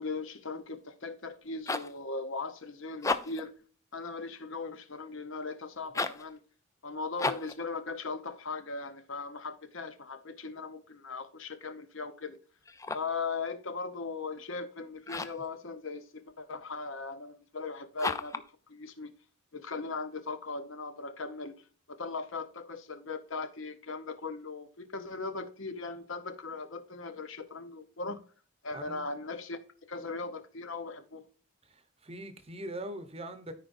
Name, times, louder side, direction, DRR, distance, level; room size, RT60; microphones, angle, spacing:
voice 1, 0.0-3.6 3.9-6.4 6.8-12.4 12.9-19.1 19.5-21.6 21.9-28.2 28.6-29.6 29.9-31.2, left 4 dB, 65° left, 0.9 m, -39 dB
sound 1, 1.3-2.0 2.9-3.5 5.9-6.3 7.2-7.6 12.6-13.2 15.0-15.5 18.0-18.5, left 3 dB, 15° left, 0.4 m, -34 dB
voice 2, 28.7-29.0 32.0-33.5, right 1 dB, 25° right, 0.9 m, -41 dB
13.5 x 4.9 x 2.6 m
head